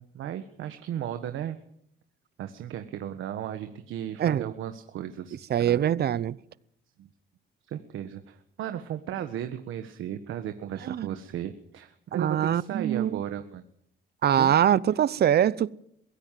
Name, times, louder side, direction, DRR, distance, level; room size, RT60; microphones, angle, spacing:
voice 1, 0.0-1.6 2.4-5.8 7.0-7.1 7.6-13.6 14.4-14.5, right 10 dB, 80° right, 1.5 m, -35 dB
voice 2, 5.5-6.4 10.9-11.1 12.1-13.2 14.2-15.7, right 10 dB, 55° right, 0.8 m, -23 dB
23.0 x 16.0 x 7.6 m
cardioid pair, 90°, 20 cm